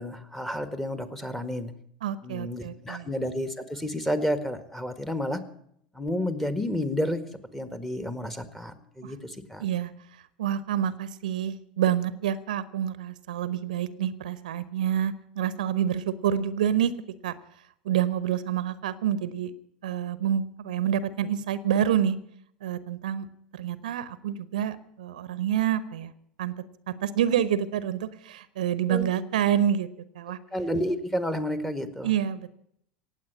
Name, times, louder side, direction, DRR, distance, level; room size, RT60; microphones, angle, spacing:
voice 1, 0.0-1.7 2.2-5.4 5.9-7.2 7.5-9.6 28.9-29.1 30.5-32.1, equal, 5° left, 10 dB, 1.7 m, -30 dB
voice 2, 2.0-3.1 9.0-9.1 9.6-16.9 17.2-17.3 17.8-19.5 19.8-22.2 22.6-23.3 23.5-26.1 26.4-26.5 26.9-29.9 30.1-30.4 32.0-32.6, right 10 dB, 70° right, 16 dB, 0.9 m, -27 dB
17.5 x 8.0 x 9.7 m, 0.70 s
figure-of-eight pair, 80°, 4 cm